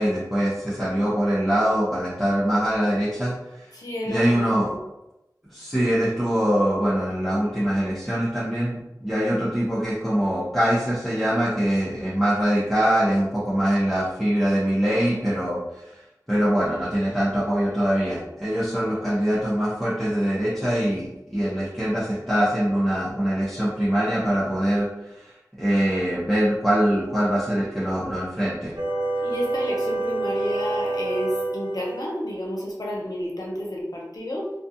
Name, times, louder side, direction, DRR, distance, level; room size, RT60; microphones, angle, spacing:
voice 1, 0.0-3.3 4.1-4.7 5.5-16.0 16.3-25.3 25.6-28.7, equal, ahead, -11 dB, 0.7 m, -23 dB
voice 2, 3.7-4.8 29.2-34.5, left 1 dB, 70° left, -3 dB, 0.7 m, -30 dB
sound 1, 28.8-32.0, right 2 dB, 85° right, 0.5 m, -27 dB
2.4 x 2.2 x 2.7 m, 0.92 s
wide cardioid pair, 50°, 7 cm